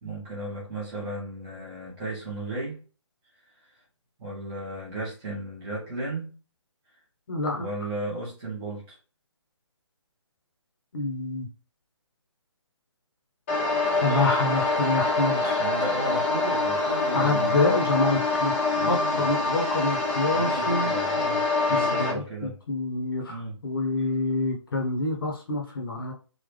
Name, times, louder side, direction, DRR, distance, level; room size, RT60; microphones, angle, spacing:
voice 1, 0.0-2.8 4.2-6.3 7.6-9.0 15.6-17.6 18.7-19.3 20.3-22.6 23.3-23.6, right 2 dB, 15° right, -6 dB, 1.4 m, -35 dB
voice 2, 7.3-7.7 10.9-11.5 14.0-15.6 17.1-20.9 21.6-26.1, left 2 dB, 45° left, 0 dB, 1.3 m, -27 dB
sound 1, 13.5-22.1, left 3 dB, 20° left, 1.2 m, -25 dB
4.0 x 2.8 x 3.3 m, 0.35 s
hypercardioid pair, 170°, 16 cm